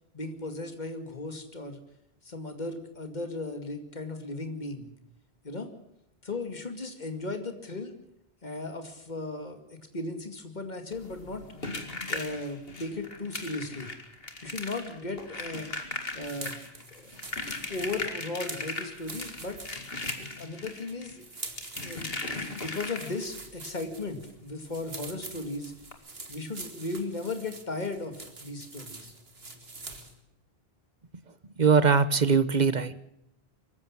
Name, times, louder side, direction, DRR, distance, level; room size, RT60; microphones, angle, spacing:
voice 1, 0.1-1.8 2.2-4.9 5.4-5.7 6.2-7.9 8.4-11.5 12.1-13.9 14.4-15.7 16.1-16.6 16.9-17.1 17.7-19.6 20.4-21.3 21.8-25.7 26.3-29.1, left 2 dB, 45° left, 6 dB, 2.4 m, -36 dB
sound 1, 10.9-23.4 24.9-25.0 25.3-25.4 25.8-25.9, left 2 dB, 70° left, 2.6 m, -38 dB
sound 2, 16.3-30.2, right 3 dB, 70° right, 2.3 m, -45 dB
voice 2, 31.6-33.0, right 5 dB, 45° right, 14 dB, 1.1 m, -21 dB
24.5 x 15.0 x 7.3 m, 0.81 s
omnidirectional pair, 1.1 m